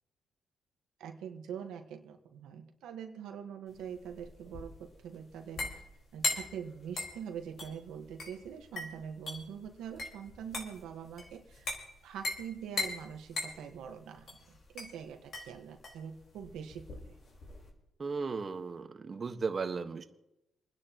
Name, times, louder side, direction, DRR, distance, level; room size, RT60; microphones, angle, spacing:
voice 1, 1.0-5.7 6.1-11.7 12.0-17.0, right 8 dB, 85° right, 4 dB, 1.4 m, -44 dB
sound 1, 3.7-17.7, left 3 dB, 50° left, 4.6 m, -40 dB
voice 2, 18.0-20.0, right 4 dB, 40° right, 7 dB, 1.4 m, -36 dB
29.5 x 10.0 x 3.0 m, 0.87 s
cardioid pair, 90°, 0 cm